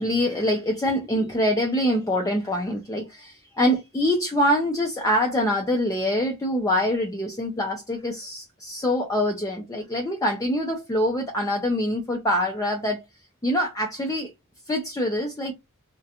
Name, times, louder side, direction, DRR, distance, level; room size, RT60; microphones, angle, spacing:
voice 1, 0.0-13.0 13.4-14.3 14.7-15.5, equal, 15° left, 0.4 m, -24 dB
2.4 x 2.2 x 2.7 m
head